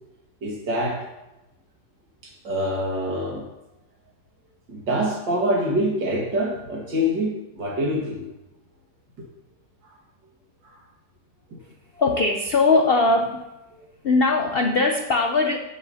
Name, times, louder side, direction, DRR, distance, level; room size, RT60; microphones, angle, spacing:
voice 1, 0.4-1.1 2.2-3.5 4.7-8.3 9.2-9.3 9.8-10.0 10.6-10.8 11.5-11.6, equal, 75° right, -1 dB, 2.6 m, -26 dB
voice 2, 12.0-13.5 14.0-15.6, left 3 dB, 70° left, 3 dB, 0.5 m, -20 dB
16.5 x 7.4 x 2.8 m, 0.98 s
omnidirectional pair, 2.0 m